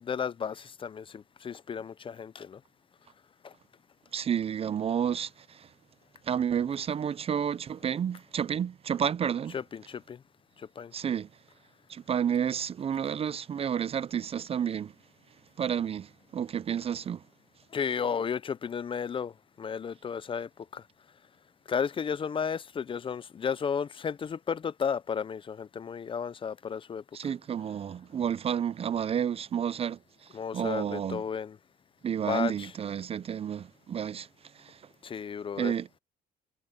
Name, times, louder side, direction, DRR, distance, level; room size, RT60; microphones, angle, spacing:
voice 1, 0.0-2.6 3.4-3.5 9.5-10.2 10.6-10.9 17.7-19.3 19.6-20.8 21.7-27.0 30.3-31.6 32.3-32.7 35.0-35.7, left 7 dB, 30° left, 0.5 m, -33 dB
voice 2, 4.1-5.7 6.2-9.5 10.9-11.3 11.9-14.9 15.6-17.2 27.1-31.2 32.0-34.3 34.6-34.8 35.6-35.9, right 8 dB, 35° right, 0.5 m, -31 dB
cardioid pair, 110°, 17 cm